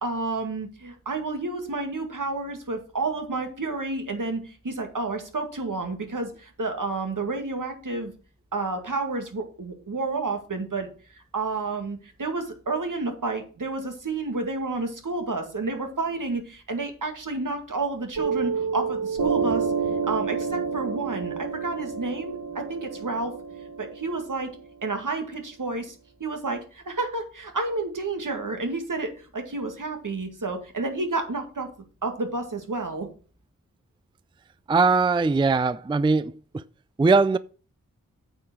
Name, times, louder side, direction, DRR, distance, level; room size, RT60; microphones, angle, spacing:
voice 1, 0.0-8.1 8.5-19.7 20.0-23.3 23.8-24.5 24.8-31.7 32.0-33.1, right 3 dB, 70° right, 2.1 m, -30 dB
Piano, 18.2-25.2, right 6 dB, 85° right, 1.6 m, -29 dB
voice 2, 34.7-36.6 37.0-37.4, right 4 dB, 15° right, 0.4 m, -21 dB
8.9 x 4.9 x 6.2 m
wide cardioid pair, 65°, 33 cm